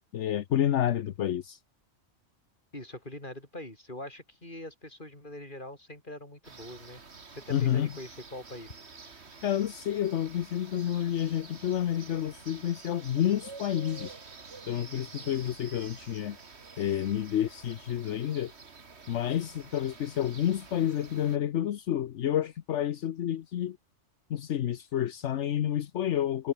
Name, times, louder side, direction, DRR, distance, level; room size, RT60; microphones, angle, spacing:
voice 1, 0.1-1.6 7.5-7.9 9.1-14.1 14.7-16.4 16.8-18.5 19.1-23.8 24.3-26.5, left 10 dB, 70° left, 1.1 m, -29 dB
voice 2, 2.7-7.0 7.3-8.8 12.1-12.2 14.9-15.3, left 1 dB, 40° left, 6.2 m, -43 dB
sound 1, 6.4-21.4, right 4 dB, 60° right, 2.3 m, -49 dB
omnidirectional pair, 1.3 m